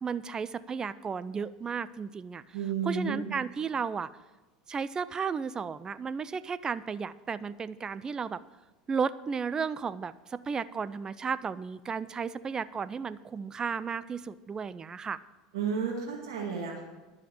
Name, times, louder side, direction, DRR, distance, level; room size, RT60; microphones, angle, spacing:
voice 1, 0.0-2.4 2.9-4.1 4.7-8.4 8.9-15.2, right 6 dB, 25° right, 16 dB, 0.5 m, -34 dB
voice 2, 2.5-3.2 15.5-16.8, right 6 dB, 70° right, -2 dB, 2.2 m, -32 dB
11.0 x 7.4 x 7.8 m, 1.2 s
hypercardioid pair, 85°, 3 cm